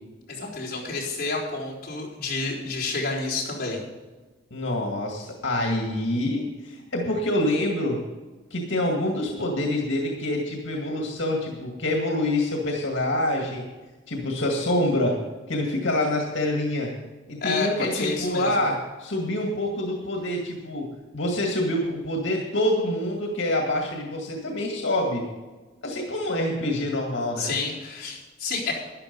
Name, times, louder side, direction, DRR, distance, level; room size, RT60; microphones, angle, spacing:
voice 1, 0.3-3.8 17.4-18.6 27.4-28.7, left 3 dB, 50° left, -6 dB, 3.9 m, -29 dB
voice 2, 4.5-8.0 8.5-13.6 14.1-15.2 15.5-16.9 17.3-20.9 21.1-25.2 25.8-27.5, left 1 dB, 85° left, 1 dB, 1.9 m, -26 dB
13.0 x 10.5 x 5.4 m, 1.2 s
head